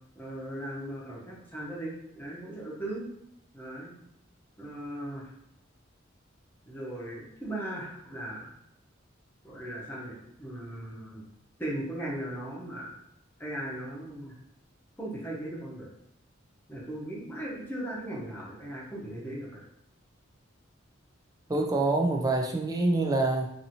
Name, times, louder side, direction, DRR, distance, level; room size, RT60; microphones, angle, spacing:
voice 1, 0.2-3.1 3.5-3.9 4.6-5.3 6.7-8.5 9.4-11.2 11.6-13.0 13.4-14.3 15.0-15.9 16.7-19.6, right 1 dB, 10° left, -5 dB, 0.8 m, -38 dB
voice 2, 21.5-23.5, right 2 dB, 20° right, 2 dB, 0.3 m, -26 dB
2.8 x 2.7 x 2.7 m, 0.77 s
head